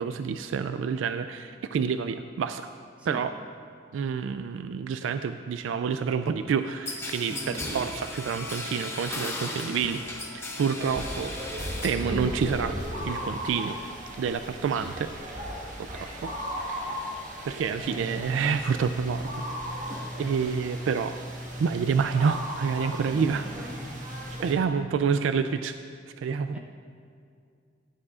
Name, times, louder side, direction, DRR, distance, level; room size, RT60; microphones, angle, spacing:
voice 1, 0.0-2.7 3.1-3.3 3.9-10.0 10.3-12.8 13.0-13.8 14.2-15.1 15.8-16.3 16.7-17.1 17.4-19.4 20.2-21.2 21.6-23.5 24.4-25.7 26.2-26.6, right 6 dB, 90° right, 10 dB, 0.3 m, -28 dB
Wind instrument woodwind instrument, 5.0-13.0, left 2 dB, 70° left, 0.6 m, -49 dB
sound 1, 6.9-12.1 12.4-13.0, left 2 dB, 15° left, 1.2 m, -36 dB
voice 2, 7.3-7.7 22.8-24.0 26.5-26.6, equal, 5° right, -1 dB, 1.0 m, -42 dB
sound 2, 10.8-24.5, equal, 40° right, 1.5 m, -36 dB
15.0 x 9.6 x 2.4 m, 2.3 s
head